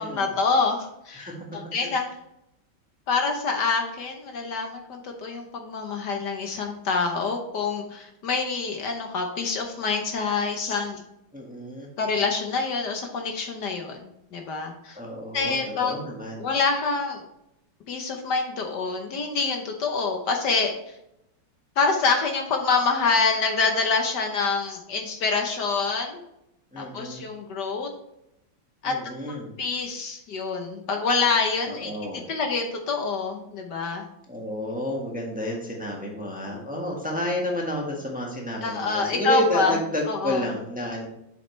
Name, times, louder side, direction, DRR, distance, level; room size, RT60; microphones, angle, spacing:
voice 1, 0.0-2.0 3.1-11.0 12.0-15.0 15.3-16.0 16.4-17.2 17.9-21.0 21.8-26.2 26.8-27.9 28.8-31.9 32.3-34.0 38.6-39.7 40.1-40.5, left 4 dB, 65° left, 3 dB, 1.5 m, -26 dB
voice 2, 11.3-11.9 14.9-16.5 26.7-27.2 28.8-29.5 31.6-32.3 34.3-41.1, left 1 dB, 5° right, -1 dB, 1.4 m, -30 dB
7.8 x 7.1 x 3.2 m, 0.84 s
omnidirectional pair, 2.1 m